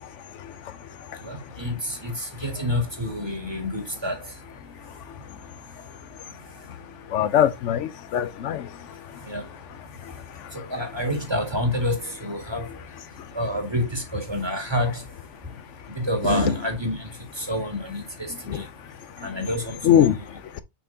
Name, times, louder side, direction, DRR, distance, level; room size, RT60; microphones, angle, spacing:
voice 1, 1.2-4.2 9.3-9.4 10.7-12.7 13.4-15.0 16.1-17.0 17.4-18.6 19.2-20.2, left 1 dB, 20° right, 2.0 m, -27 dB
voice 2, 7.1-8.7 18.5-18.6 19.8-20.1, left 10 dB, 80° left, 0.9 m, -20 dB
6.6 x 5.6 x 2.7 m
omnidirectional pair, 1.2 m